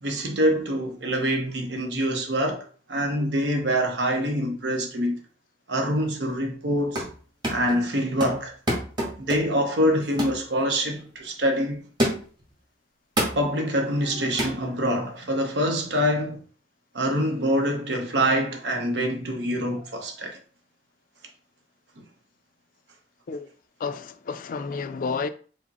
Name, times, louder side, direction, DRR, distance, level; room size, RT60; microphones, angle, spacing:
voice 1, 0.0-5.2 5.7-7.1 7.5-8.5 9.2-11.9 13.3-16.4 16.9-20.4, equal, 70° right, 0.8 m, -25 dB
sound 1, 6.7-7.2 7.4-7.8 8.2-9.6 10.2-10.4 10.9-11.1 12.0-12.4 13.2-13.5 14.4-14.6, equal, 25° right, 1.5 m, -27 dB
voice 2, 23.8-25.3, left 4 dB, 50° left, 0.4 m, -30 dB
4.9 x 2.1 x 4.1 m
head